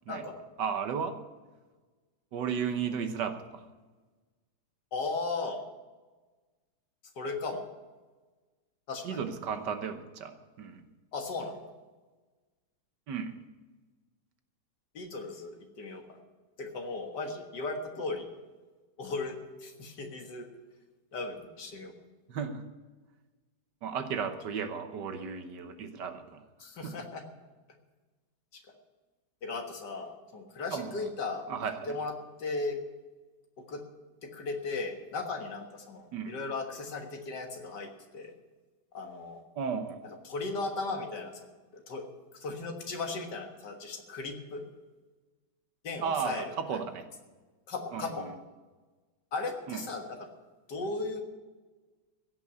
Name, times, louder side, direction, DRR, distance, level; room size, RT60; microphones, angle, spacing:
voice 1, 0.6-1.2 2.3-3.6 9.0-10.8 13.1-13.3 22.3-22.6 23.8-26.4 26.8-26.9 30.7-31.1 31.5-32.0 36.1-36.3 39.6-40.0 46.0-47.1 47.9-48.3 49.7-49.8, right 6 dB, 65° right, 8 dB, 1.6 m, -34 dB
voice 2, 4.9-5.6 7.2-7.6 8.9-9.2 11.1-11.6 14.9-16.2 16.6-18.3 19.0-20.5 21.1-21.9 26.6-27.2 28.5-28.6 29.4-31.5 31.9-32.8 33.6-33.8 34.2-38.3 38.9-39.4 40.0-41.5 41.7-42.1 42.4-44.6 45.8-46.8 47.7-48.3 49.3-50.3 50.7-51.2, left 3 dB, 60° left, 4 dB, 2.1 m, -36 dB
16.0 x 6.1 x 9.4 m, 1.3 s
omnidirectional pair, 2.1 m